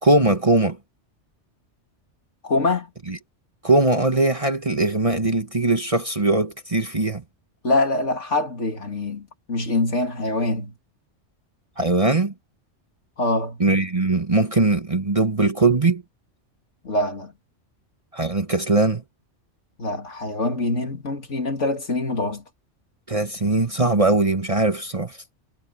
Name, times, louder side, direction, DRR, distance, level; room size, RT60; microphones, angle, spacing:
voice 1, 0.0-0.8 3.1-3.2 3.6-7.2 11.8-12.3 13.6-16.0 18.1-19.0 23.1-25.2, right 2 dB, 30° right, 1.5 m, -20 dB
voice 2, 2.4-2.9 7.6-10.7 13.2-13.6 16.8-17.3 19.8-22.4, left 2 dB, 80° left, 3.4 m, -24 dB
omnidirectional pair, 1.2 m